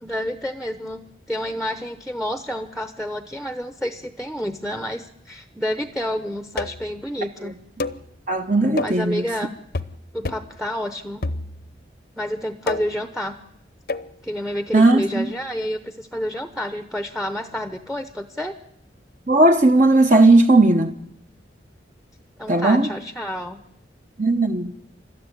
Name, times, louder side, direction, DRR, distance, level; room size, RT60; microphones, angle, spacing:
voice 1, 0.0-1.0 1.3-7.5 8.8-9.5 10.1-11.2 12.2-13.4 14.2-18.5 22.4-23.6, equal, ahead, 0.8 m, -29 dB
sound 1, 6.6-6.9 7.8-8.1 8.8-9.1 9.7-10.0 10.2-10.5 11.2-11.8 12.7-13.1 13.9-14.1, left 2 dB, 55° left, 0.8 m, -29 dB
voice 2, 8.3-9.2 14.7-15.3 19.3-20.9 22.5-22.9 24.2-24.7, right 2 dB, 40° right, 0.9 m, -16 dB
29.0 x 13.5 x 9.9 m
head